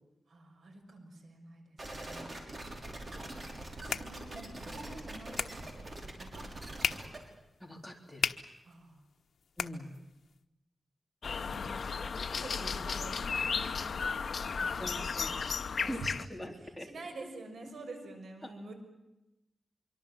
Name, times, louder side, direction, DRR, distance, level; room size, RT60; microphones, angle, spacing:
voice 1, 0.3-2.4 3.8-5.9 6.2-7.0 8.6-9.0 11.4-11.7 12.0-12.1 12.4-15.0 15.8-16.1 16.6-18.7, right 3 dB, 85° right, 5 dB, 6.4 m, -48 dB
sound 1, 1.8-7.2, right 1 dB, 40° right, 6.1 m, -43 dB
sound 2, 3.4-10.4, left 6 dB, 80° left, 1.2 m, -40 dB
voice 2, 7.6-8.3 9.6-9.9 14.8-15.4 15.7-16.9 18.4-18.5, equal, ahead, 2 dB, 3.7 m, -43 dB
sound 3, 11.2-16.3, left 5 dB, 65° left, 1.1 m, -34 dB
26.0 x 23.5 x 7.5 m, 0.95 s
wide cardioid pair, 105°, 0 cm